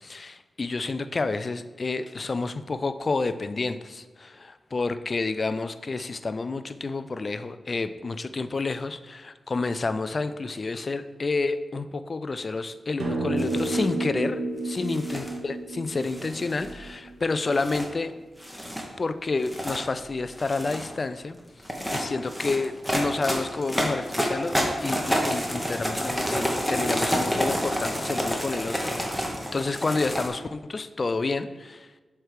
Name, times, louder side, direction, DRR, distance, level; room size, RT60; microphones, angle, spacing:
voice 1, 0.0-18.1 19.0-21.4 21.9-24.5 24.8-31.9, left 3 dB, 40° left, 11 dB, 0.3 m, -29 dB
sound 1, 13.0-17.5, right 2 dB, 85° right, 1.0 m, -31 dB
sound 2, 13.4-13.9 14.8-15.3 16.0-16.8 17.5-17.8 18.4-18.8 19.4-19.8 20.3-20.9 21.6-30.3, equal, ahead, 1.0 m, -29 dB
7.7 x 3.3 x 4.9 m, 1.3 s
wide cardioid pair, 115°, 0 cm